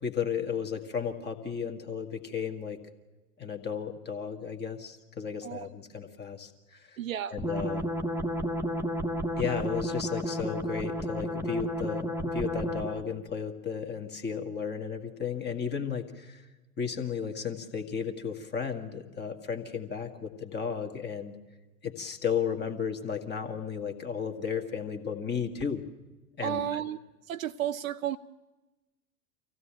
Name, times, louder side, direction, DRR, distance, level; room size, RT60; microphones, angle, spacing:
voice 1, 0.0-2.8 3.4-7.0 7.3-7.9 9.4-16.4 16.8-21.4 21.8-25.8 26.4-26.8, left 6 dB, 25° left, 1.8 m, -34 dB
voice 2, 7.0-7.3 26.4-27.0 27.3-28.2, right 11 dB, 65° right, 0.7 m, -32 dB
sound 1, 7.4-13.1, equal, 5° right, 1.2 m, -32 dB
25.0 x 16.0 x 8.9 m
figure-of-eight pair, 85°, 44 cm